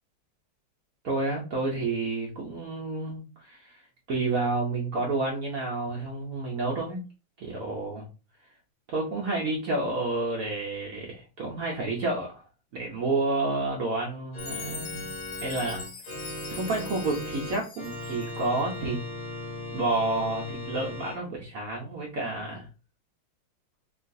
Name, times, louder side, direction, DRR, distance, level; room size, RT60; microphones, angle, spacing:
voice 1, 1.0-3.8 4.1-7.0 7.4-8.1 8.9-12.4 12.7-15.1 15.4-15.8 16.5-19.0 19.7-22.7, right 2 dB, 75° right, -2 dB, 0.7 m, -30 dB
Organ, 14.3-21.2, left 2 dB, 35° left, 0.9 m, -38 dB
Chime, 14.4-18.6, left 5 dB, 75° left, 1.5 m, -42 dB
3.7 x 2.3 x 2.5 m, 0.32 s
omnidirectional pair, 2.2 m